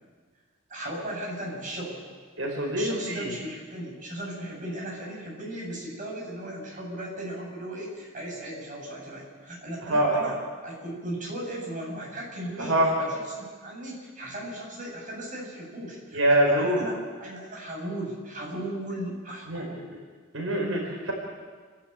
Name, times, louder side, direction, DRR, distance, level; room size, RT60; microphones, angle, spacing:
voice 1, 0.7-2.0 2.7-19.9, right 1 dB, 45° right, -2 dB, 7.7 m, -37 dB
voice 2, 2.4-3.3 9.8-10.3 12.6-12.9 16.1-16.8 19.5-19.6 20.3-21.1, right 1 dB, 85° right, -1 dB, 4.7 m, -24 dB
29.5 x 12.5 x 8.9 m, 1.5 s
head